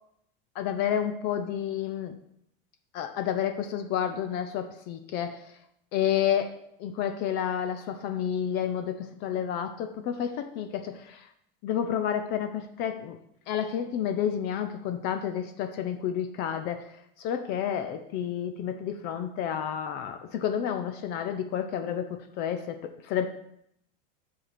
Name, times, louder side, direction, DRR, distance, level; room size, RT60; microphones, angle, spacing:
voice 1, 0.6-2.2 2.9-5.5 5.9-11.3 11.6-13.2 13.5-23.3, left 9 dB, 35° left, 8 dB, 0.5 m, -30 dB
7.3 x 4.6 x 6.7 m, 0.75 s
supercardioid pair, 170°, 29 cm